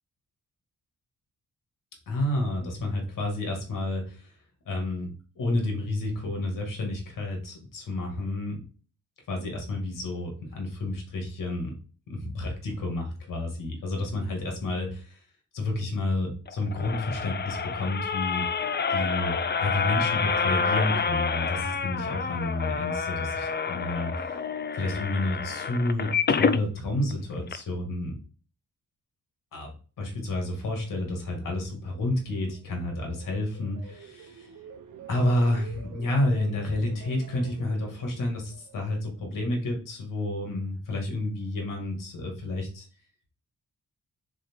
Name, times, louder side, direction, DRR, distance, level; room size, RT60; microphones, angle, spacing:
voice 1, 2.1-4.3 4.7-8.6 9.3-11.7 12.1-15.2 15.5-18.5 18.9-24.4 24.7-28.2 29.5-29.7 30.0-34.5 35.1-42.9, left 2 dB, 85° left, 1 dB, 2.2 m, -30 dB
sound 1, 16.5-26.6 27.1-27.2 27.5-27.6, left 5 dB, 35° left, 0.5 m, -28 dB
sound 2, 32.5-39.7 40.1-40.5, right 6 dB, 75° right, 0.9 m, -48 dB
4.9 x 4.5 x 4.6 m, 0.38 s
cardioid pair, 75°, 31 cm